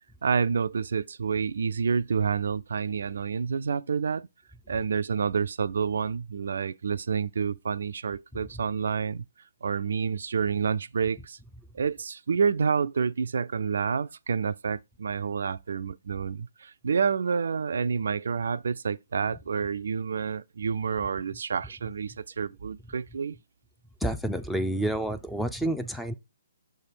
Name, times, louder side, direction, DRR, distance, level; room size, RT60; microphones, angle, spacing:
voice 1, 0.2-4.3 4.7-9.2 9.6-11.4 11.7-23.4, right 6 dB, 70° right, 0.3 m, -28 dB
voice 2, 24.0-26.1, right 1 dB, ahead, 0.5 m, -29 dB
6.7 x 3.3 x 4.5 m
hypercardioid pair, 140°, 0 cm